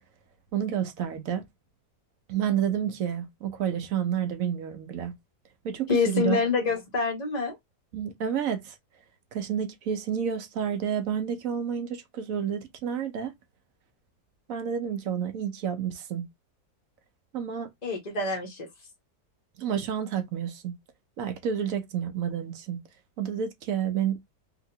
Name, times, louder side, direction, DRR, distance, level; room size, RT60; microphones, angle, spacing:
voice 1, 0.5-1.4 2.3-5.1 5.6-6.4 7.9-8.8 9.3-13.3 14.5-16.3 17.3-17.7 19.6-20.7 21.2-22.8 23.2-24.2, right 8 dB, 65° right, 0.9 m, -30 dB
voice 2, 5.9-7.6 17.8-18.7, left 4 dB, 40° left, 0.6 m, -26 dB
2.9 x 2.8 x 2.6 m
omnidirectional pair, 1.8 m